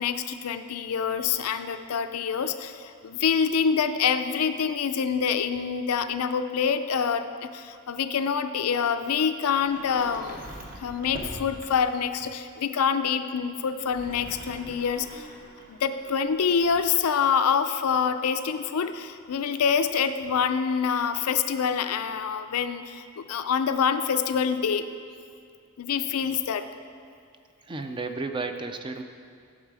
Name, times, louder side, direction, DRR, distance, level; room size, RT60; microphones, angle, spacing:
voice 1, 0.0-10.4 10.8-15.3 15.7-24.8 25.8-26.6, left 6 dB, 90° left, 9 dB, 0.4 m, -26 dB
Sliding door, 9.5-12.0 13.7-16.9, right 1 dB, 40° right, 0.9 m, -43 dB
voice 2, 27.7-29.0, right 3 dB, 20° right, 7 dB, 0.4 m, -32 dB
8.8 x 6.5 x 4.8 m, 2.3 s
head